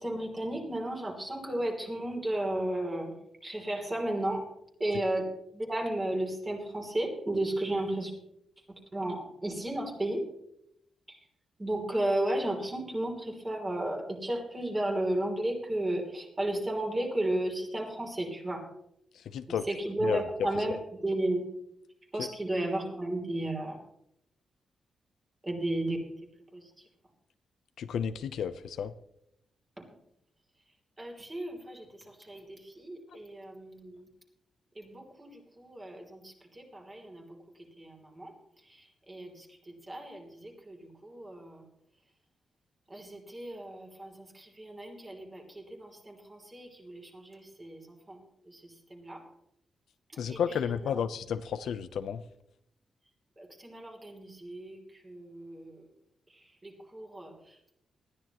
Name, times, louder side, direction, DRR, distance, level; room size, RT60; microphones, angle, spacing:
voice 1, 0.0-4.5 4.8-8.1 8.7-10.3 11.1-11.2 11.6-18.7 19.5-21.5 22.1-23.8 25.4-26.1 26.5-26.9 29.8-29.9 31.0-34.1 34.7-41.7 42.9-49.2 50.1-51.0 53.4-55.9 56.3-57.7, right 1 dB, 15° right, 1 dB, 3.1 m, -34 dB
voice 2, 19.3-19.7 20.0-20.2 27.8-28.9 50.2-52.2, left 8 dB, 75° left, 11 dB, 0.7 m, -32 dB
19.5 x 14.0 x 3.0 m, 0.79 s
wide cardioid pair, 175°, 0 cm